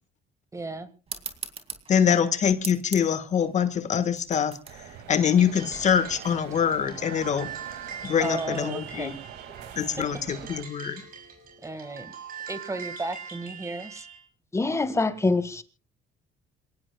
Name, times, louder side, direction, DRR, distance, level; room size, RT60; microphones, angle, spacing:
voice 1, 0.5-0.9 8.2-9.2 10.0-10.1 11.6-12.1 12.5-14.1, right 2 dB, 20° right, 1.8 m, -34 dB
sound 1, 1.1-6.1, right 5 dB, 35° right, 2.6 m, -41 dB
voice 2, 1.9-4.6 5.1-7.5 8.0-9.2 9.7-11.0, left 8 dB, 45° left, 1.5 m, -24 dB
sound 2, 4.6-10.6, right 9 dB, 80° right, 2.3 m, -44 dB
sound 3, 5.2-14.2, right 7 dB, 60° right, 6.4 m, -42 dB
voice 3, 14.5-15.6, left 3 dB, 15° left, 1.8 m, -24 dB
27.5 x 18.0 x 2.3 m
cardioid pair, 110°, 17 cm